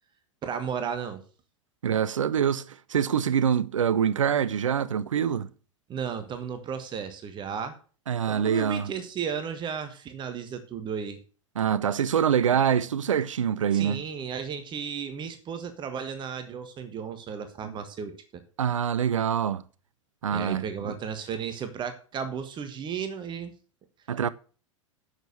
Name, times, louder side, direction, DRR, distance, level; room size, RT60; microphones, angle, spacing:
voice 1, 0.4-1.2 5.9-7.8 8.3-11.2 13.7-18.4 20.3-23.5, right 7 dB, 25° right, 1.4 m, -34 dB
voice 2, 1.8-5.5 8.1-8.9 11.6-14.0 17.6-17.8 18.6-19.6 20.2-20.9 24.1-24.3, right 8 dB, 70° right, 0.6 m, -25 dB
8.9 x 6.6 x 6.6 m
figure-of-eight pair, 90°, 17 cm